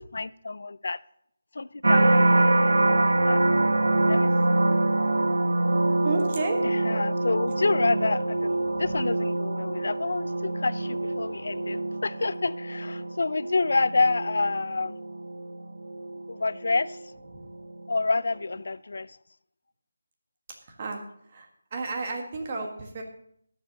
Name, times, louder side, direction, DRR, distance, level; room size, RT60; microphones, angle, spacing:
voice 1, 0.1-1.0 1.5-3.4 4.1-4.7 6.6-15.0 16.3-17.0 17.9-19.2, left 3 dB, 65° left, 0.4 m, -28 dB
sound 1, 1.8-17.0 17.5-18.0, right 2 dB, 80° right, 0.7 m, -25 dB
voice 2, 6.0-6.6 17.3-17.5 20.8-21.0 21.3-23.0, right 3 dB, 30° right, 1.5 m, -32 dB
21.5 x 7.3 x 2.9 m
figure-of-eight pair, 170°, 0 cm